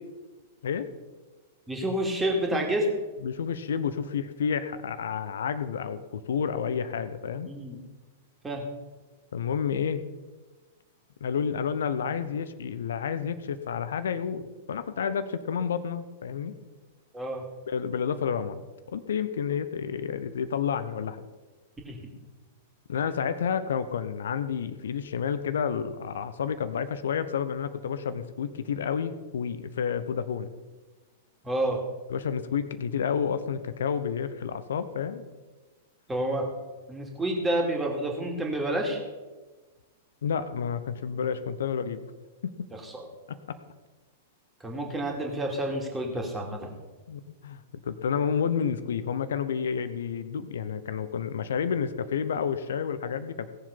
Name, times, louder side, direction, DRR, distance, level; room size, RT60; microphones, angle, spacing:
voice 1, 1.7-2.9 7.5-7.8 8.4-8.6 17.1-17.4 21.9-22.0 31.4-31.8 36.1-36.5 36.9-39.0 42.8-43.1 44.6-46.7, right 1 dB, 10° right, 0 dB, 2.6 m, -29 dB
voice 2, 3.2-7.5 9.3-10.0 11.2-16.5 17.7-18.6 18.9-21.3 22.9-30.5 32.1-35.2 40.2-42.0 42.4-42.7 43.3-43.6 47.1-47.6 47.9-53.5, left 7 dB, 60° left, 13 dB, 0.8 m, -30 dB
17.5 x 7.3 x 5.4 m, 1.2 s
figure-of-eight pair, 100°, 0 cm